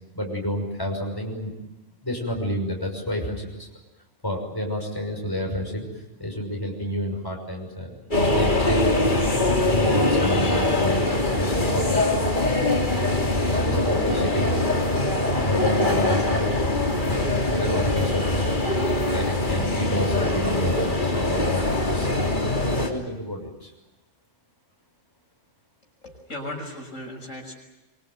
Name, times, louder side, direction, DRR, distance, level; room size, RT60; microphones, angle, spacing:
voice 1, 0.1-1.6 2.0-3.7 4.2-8.0 8.3-9.2 9.6-12.2 12.9-14.7 15.4-16.7 17.1-18.4 19.1-22.1 22.7-23.7, equal, 15° left, 1 dB, 6.2 m, -30 dB
sound 1, 8.1-22.9, left 2 dB, 40° left, 3.5 m, -23 dB
voice 2, 26.0-27.5, left 1 dB, 85° left, 1 dB, 6.7 m, -36 dB
25.5 x 24.5 x 9.3 m, 1.1 s
omnidirectional pair, 1.3 m